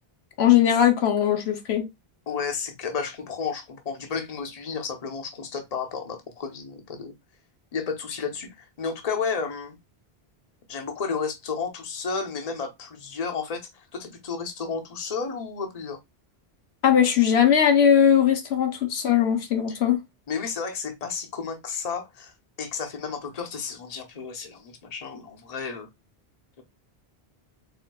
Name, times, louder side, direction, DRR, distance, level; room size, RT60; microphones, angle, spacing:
voice 1, 0.4-1.9 16.8-20.0, left 9 dB, 80° left, 1.1 m, -19 dB
voice 2, 2.3-7.1 7.7-9.8 10.7-16.0 19.7-19.8 20.3-22.3 22.6-25.9, left 5 dB, 40° left, 0.9 m, -32 dB
4.4 x 3.5 x 2.2 m
omnidirectional pair, 1.1 m